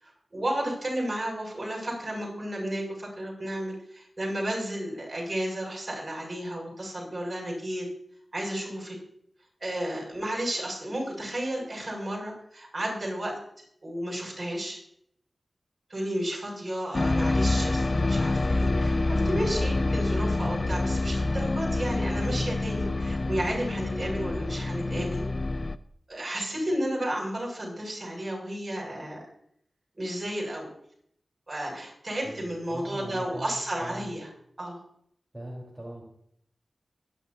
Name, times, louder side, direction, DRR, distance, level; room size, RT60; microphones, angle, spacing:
voice 1, 0.0-7.9 8.3-9.0 9.6-13.3 13.8-14.8 15.9-25.2 26.1-29.2 29.9-30.7 31.5-34.3 34.6-34.8, right 1 dB, 45° right, -2 dB, 7.5 m, -32 dB
sound 1, 16.9-25.8, left 2 dB, 50° left, 0.6 m, -27 dB
voice 2, 32.2-34.1 35.3-36.0, right 1 dB, 20° right, -5 dB, 4.3 m, -41 dB
24.5 x 11.0 x 2.9 m, 0.69 s
cardioid pair, 45°, 0 cm